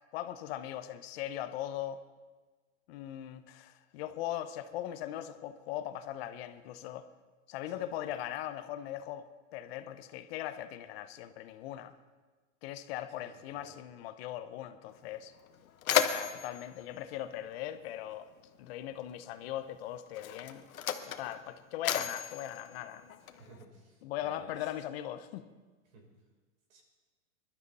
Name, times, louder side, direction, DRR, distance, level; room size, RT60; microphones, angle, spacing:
voice 1, 0.1-2.0 2.9-7.1 7.5-12.0 12.6-15.3 15.9-18.3 18.6-20.7 21.0-23.0 24.0-25.4, left 12 dB, 50° left, 0.9 m, -40 dB
voice 2, 13.2-13.7 23.3-24.7 25.9-26.1 26.7-26.8, right 3 dB, 70° right, 5.8 m, -55 dB
Mechanisms, 14.9-15.0 15.4-18.1 19.1-19.2 20.1-23.6, left 9 dB, 90° left, 1.2 m, -35 dB
21.5 x 12.5 x 4.2 m
hypercardioid pair, 140°, 41 cm